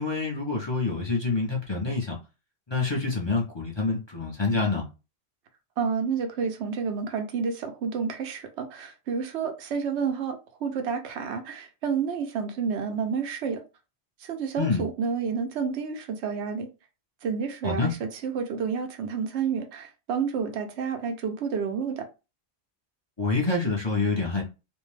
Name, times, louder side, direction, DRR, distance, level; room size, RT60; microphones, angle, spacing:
voice 1, 0.0-2.2 2.7-4.8 14.6-14.8 17.6-17.9 23.2-24.4, left 3 dB, 30° left, 0.6 m, -27 dB
voice 2, 5.8-10.4 10.6-13.6 14.2-16.7 17.2-22.1, right 6 dB, 85° right, 0.9 m, -30 dB
2.6 x 2.1 x 3.2 m
omnidirectional pair, 1.1 m